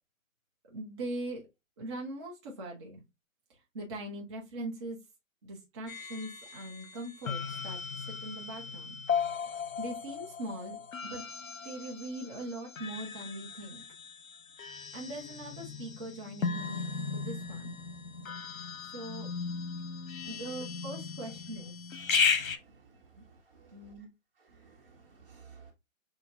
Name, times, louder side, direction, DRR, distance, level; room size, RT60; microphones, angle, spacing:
voice 1, 0.7-1.4 1.8-3.0 3.7-5.0 5.4-7.8 8.1-9.0 9.8-10.8 11.0-11.2 11.6-13.8 14.9-17.7 18.9-19.3 20.3-21.7 23.7-24.1, right 1 dB, 20° right, 0.8 m, -41 dB
sound 1, 5.9-22.6, left 5 dB, 75° left, 0.8 m, -36 dB
voice 2, 22.0-22.8 23.5-23.9 24.5-25.7, right 5 dB, 40° right, 1.1 m, -56 dB
6.3 x 2.3 x 2.7 m
figure-of-eight pair, 145°, 41 cm